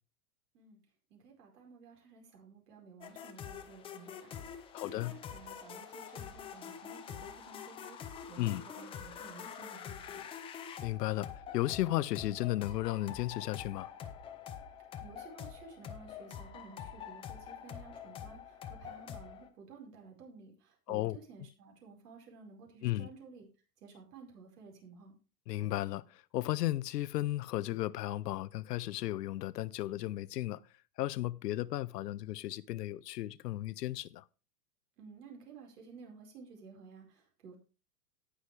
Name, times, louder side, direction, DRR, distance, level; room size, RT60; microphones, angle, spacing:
voice 1, 1.1-10.2 15.0-23.5 23.8-25.1 35.0-37.6, right 4 dB, 75° right, 5.0 m, -54 dB
sound 1, 3.0-19.5, left 8 dB, 10° left, 0.6 m, -46 dB
voice 2, 4.7-5.2 8.4-8.6 10.8-13.9 20.9-21.2 22.8-23.1 25.5-30.6 31.0-34.2, left 15 dB, 85° left, 0.8 m, -34 dB
18.0 x 6.4 x 3.3 m
supercardioid pair, 155°, 47 cm